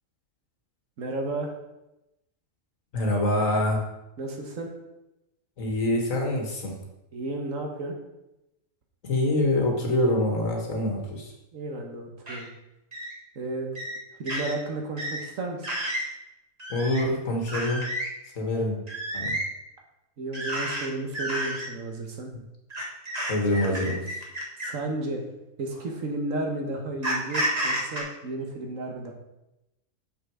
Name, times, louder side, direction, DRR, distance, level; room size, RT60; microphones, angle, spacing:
voice 1, 1.0-1.5 4.2-4.7 7.1-7.9 11.5-12.5 13.3-13.8 14.2-15.7 20.2-22.3 24.6-25.3 25.6-29.1, right 2 dB, 60° right, 2 dB, 1.5 m, -33 dB
voice 2, 2.9-3.8 5.6-6.8 9.0-11.3 16.7-17.9 18.4-18.8 19.1-19.4 22.3-22.4 23.3-24.0, left 1 dB, 60° left, 1 dB, 1.8 m, -25 dB
sound 1, 12.3-12.4 12.9-13.1 13.7-14.0 14.3-14.5 15.0-15.2 15.6-16.1 16.6-17.0 17.5-18.1 18.9-19.5 20.3-20.8 21.1-21.7 22.7-24.8 25.7-25.9 27.0-28.0, right 1 dB, 25° right, 1.6 m, -30 dB
6.7 x 6.1 x 4.7 m, 0.92 s
omnidirectional pair, 1.6 m